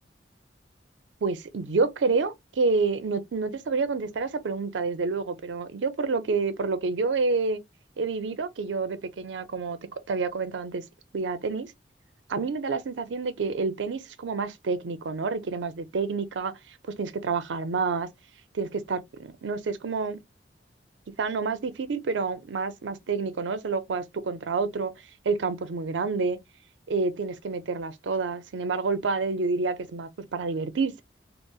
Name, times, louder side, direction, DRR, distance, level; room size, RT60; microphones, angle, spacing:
voice 1, 1.2-7.6 8.0-9.8 10.1-10.8 11.1-11.7 12.3-18.1 18.5-20.2 21.2-24.9 25.2-26.4 26.9-31.0, right 4 dB, 85° right, 0.5 m, -28 dB
3.8 x 2.0 x 2.3 m
head